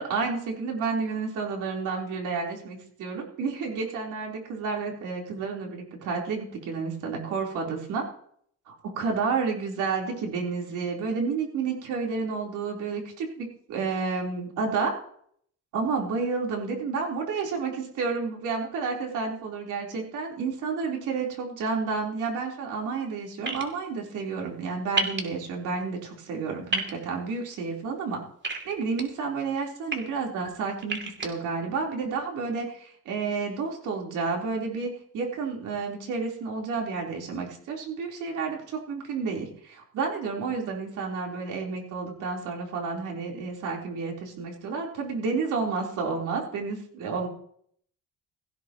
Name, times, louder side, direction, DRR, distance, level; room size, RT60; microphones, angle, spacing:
voice 1, 0.0-8.1 8.7-14.9 15.7-28.2 28.6-47.3, right 4 dB, 85° right, -1 dB, 4.0 m, -30 dB
sound 1, 23.5-23.6 25.0-25.2 26.7-26.9 28.4-29.0 29.7-30.0 30.8-31.3, right 3 dB, 40° right, 2.9 m, -28 dB
17.5 x 15.5 x 3.1 m, 0.64 s
cardioid pair, 90°, 30 cm